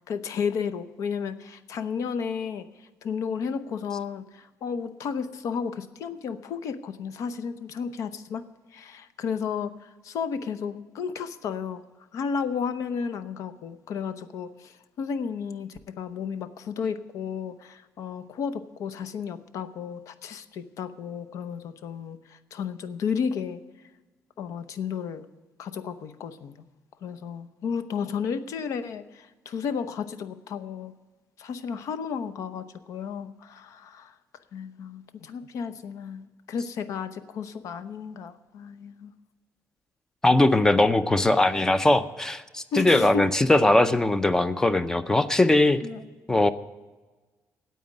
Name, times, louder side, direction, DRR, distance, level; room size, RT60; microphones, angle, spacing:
voice 1, 0.1-8.4 8.7-11.8 12.1-23.6 24.4-25.3 25.6-26.6 27.0-30.9 31.4-34.2 34.5-39.1 42.7-43.3 45.8-46.1, left 6 dB, 65° left, 12 dB, 0.8 m, -33 dB
voice 2, 40.2-45.8 46.3-46.5, left 2 dB, 10° left, 13 dB, 0.5 m, -20 dB
9.2 x 8.6 x 9.5 m, 1.3 s
cardioid pair, 175°, 6 cm